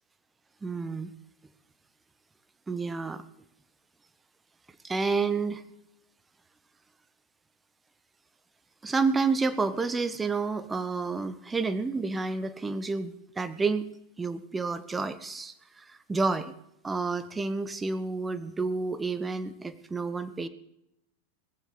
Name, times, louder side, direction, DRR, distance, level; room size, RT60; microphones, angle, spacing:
voice 1, 0.6-1.1 2.7-3.2 4.8-5.6 8.8-13.9 14.2-16.5 16.8-20.5, right 4 dB, 10° right, 11 dB, 1.2 m, -30 dB
19.5 x 15.0 x 4.0 m, 0.81 s
figure-of-eight pair, 90°, 0 cm